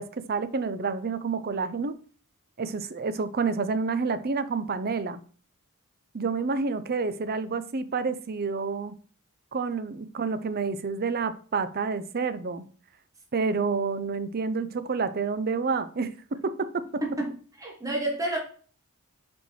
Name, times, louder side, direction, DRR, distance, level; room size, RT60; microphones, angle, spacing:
voice 1, 0.0-2.0 2.6-5.2 6.1-8.9 9.5-12.7 13.3-17.0, right 4 dB, 45° right, 0.6 m, -29 dB
voice 2, 17.6-18.4, right 1 dB, 15° right, 1.5 m, -29 dB
5.6 x 4.5 x 4.5 m
head